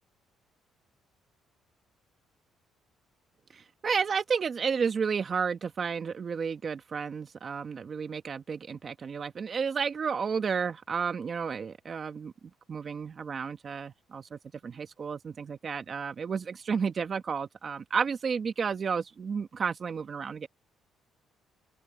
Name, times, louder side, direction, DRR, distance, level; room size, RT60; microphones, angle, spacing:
voice 1, 3.5-12.3 12.7-20.5, right 6 dB, 45° right, 1.5 m, -32 dB
open air
cardioid pair, 90°, 0 cm